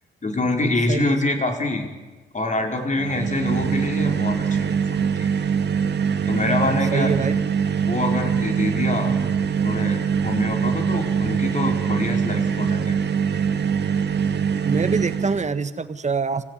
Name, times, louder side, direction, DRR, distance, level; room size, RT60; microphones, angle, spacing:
voice 1, 0.2-1.9 2.3-5.3 6.3-7.1 7.8-9.1 9.6-12.9, left 2 dB, 35° left, 4 dB, 4.7 m, -25 dB
voice 2, 0.9-1.2 6.9-7.4 9.1-9.3 14.6-16.4, right 4 dB, 35° right, 12 dB, 1.6 m, -25 dB
sound 1, 3.0-15.6, right 7 dB, 55° right, 1.9 m, -23 dB
26.5 x 16.0 x 9.8 m, 1.3 s
cardioid pair, 70°, 21 cm